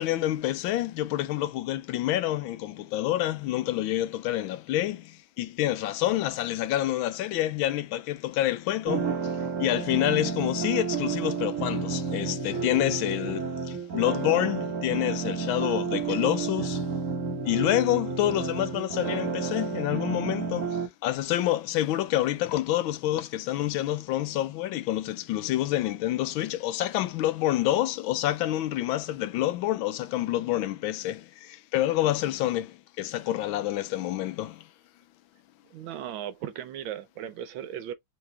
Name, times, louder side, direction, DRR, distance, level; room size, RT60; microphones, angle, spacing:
voice 1, 0.0-9.3 9.6-16.8 17.4-34.7, left 14 dB, 85° left, 1.4 m, -28 dB
sound 1, 8.9-20.9, right 5 dB, 50° right, 1.2 m, -31 dB
voice 2, 35.7-37.9, right 10 dB, 75° right, 1.4 m, -37 dB
3.9 x 2.9 x 3.3 m
omnidirectional pair, 2.2 m